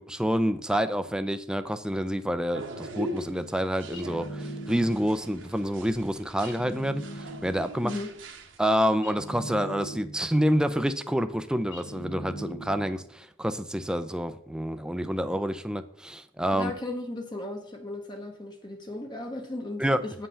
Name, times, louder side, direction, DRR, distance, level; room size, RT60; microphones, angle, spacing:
voice 1, 0.0-7.9 8.6-16.7 19.8-20.0, equal, 5° right, 11 dB, 0.4 m, -28 dB
sound 1, 2.5-8.6, right 1 dB, 75° right, 1.2 m, -41 dB
sound 2, 3.9-5.3 6.4-7.8 9.0-10.4 11.7-13.1, right 1 dB, 65° left, 1.2 m, -40 dB
voice 2, 16.5-20.3, left 2 dB, 25° left, 4 dB, 0.9 m, -36 dB
8.6 x 5.6 x 5.6 m, 0.64 s
head